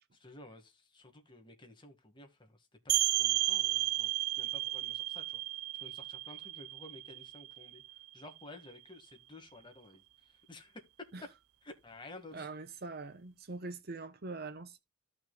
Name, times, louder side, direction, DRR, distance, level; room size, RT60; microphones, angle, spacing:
voice 1, 0.2-10.8 11.6-12.5, left 2 dB, 20° left, 1.9 m, -53 dB
sound 1, 2.9-8.4, right 18 dB, 75° right, 0.5 m, -33 dB
voice 2, 12.3-14.8, right 3 dB, 45° right, 0.8 m, -43 dB
14.5 x 6.1 x 2.3 m
head